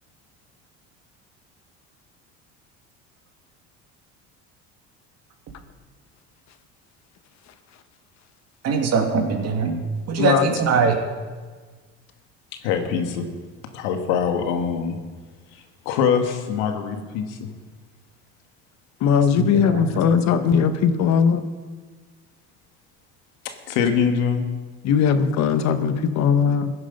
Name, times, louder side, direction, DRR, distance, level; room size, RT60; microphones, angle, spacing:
voice 1, 8.6-9.8 10.1-11.0 19.3-19.9 26.5-26.6, right 5 dB, 50° right, 3 dB, 2.2 m, -22 dB
voice 2, 10.2-10.6 19.0-21.5 24.8-26.7, left 7 dB, 55° left, 9 dB, 1.2 m, -19 dB
voice 3, 12.6-13.3 13.7-15.0 15.5-17.5 23.5-24.5, left 7 dB, 80° left, 6 dB, 1.7 m, -24 dB
15.5 x 9.8 x 5.4 m, 1.4 s
supercardioid pair, 100°, 32 cm